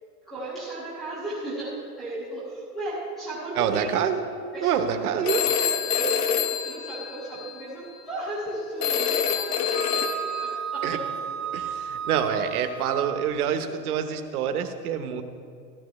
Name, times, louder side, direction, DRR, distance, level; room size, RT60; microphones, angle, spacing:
voice 1, 0.2-4.0 4.5-11.5, right 2 dB, ahead, -12 dB, 0.3 m, -36 dB
voice 2, 3.6-4.2 4.6-5.4 6.0-6.1 10.8-11.0 11.5-15.2, right 8 dB, 65° right, 8 dB, 1.1 m, -26 dB
Telephone, 5.3-7.6 8.8-10.5, left 8 dB, 70° left, 1.1 m, -26 dB
Wind instrument woodwind instrument, 9.7-13.3, right 8 dB, 35° right, 0.7 m, -33 dB
14.5 x 12.0 x 3.2 m, 2.3 s
supercardioid pair, 160°, 49 cm